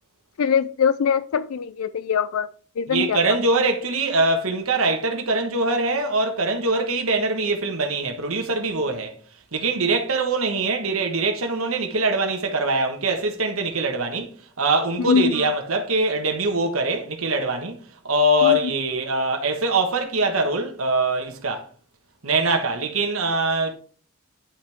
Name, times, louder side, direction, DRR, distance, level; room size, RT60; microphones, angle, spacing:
voice 1, 0.4-2.5 2.8-3.2 15.1-15.3 18.4-18.6, left 7 dB, 80° left, 0.4 m, -22 dB
voice 2, 2.9-9.1 9.5-21.7 22.2-23.7, right 2 dB, 70° right, 1.3 m, -23 dB
10.0 x 5.8 x 3.5 m
head